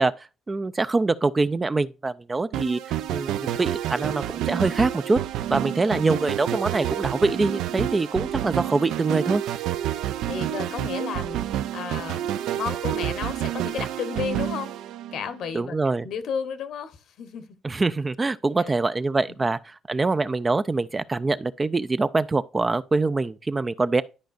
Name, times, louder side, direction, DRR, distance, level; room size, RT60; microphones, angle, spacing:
voice 1, 0.0-5.2 5.5-9.4 15.5-16.1 17.6-24.0, right 3 dB, 20° right, 0.3 m, -24 dB
sound 1, 2.5-15.5, right 12 dB, 85° right, 0.5 m, -29 dB
voice 2, 10.2-12.3 12.6-14.7 15.1-15.8 16.0-17.5 18.6-18.7, left 7 dB, 60° left, 1.0 m, -33 dB
11.5 x 5.0 x 2.5 m
cardioid pair, 150°, 0 cm